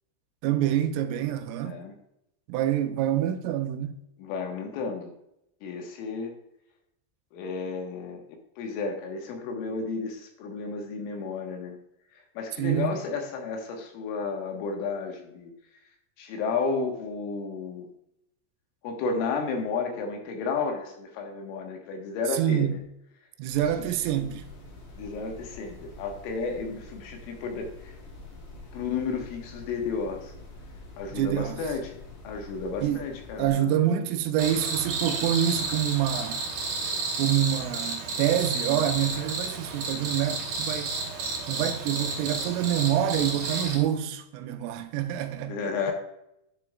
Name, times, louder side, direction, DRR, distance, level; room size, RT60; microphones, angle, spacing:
voice 1, 0.4-1.8 2.5-4.0 12.6-12.9 22.3-22.8 23.4-24.5 31.1-31.6 32.8-33.0 33.4-36.4 37.2-41.0 41.5-45.6, right 11 dB, 85° right, 3.2 m, -26 dB
voice 2, 1.6-1.9 4.2-5.1 5.6-6.3 7.3-11.8 12.1-15.5 16.2-17.9 18.8-22.8 23.8-23.9 25.0-28.0 28.7-30.3 31.0-33.9 45.5-45.9, left 4 dB, 80° left, 3.8 m, -32 dB
sound 1, 23.5-33.5, left 2 dB, 55° left, 3.5 m, -46 dB
Cricket, 34.4-43.8, right 3 dB, 45° right, 3.9 m, -31 dB
10.5 x 6.9 x 2.3 m
omnidirectional pair, 5.8 m